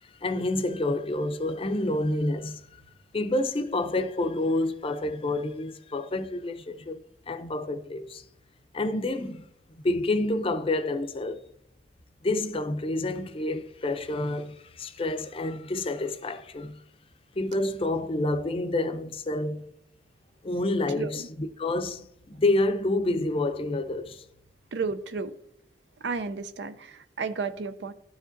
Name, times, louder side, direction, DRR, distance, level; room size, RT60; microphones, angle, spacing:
voice 1, 0.2-2.6 3.1-7.0 7.3-8.2 8.7-9.5 9.8-11.4 12.2-16.8 17.4-19.7 20.4-24.2, left 2 dB, 30° left, 0.5 m, -28 dB
voice 2, 21.0-21.3 24.7-25.3 26.0-27.9, right 4 dB, 80° right, 0.5 m, -32 dB
13.0 x 5.0 x 2.6 m
head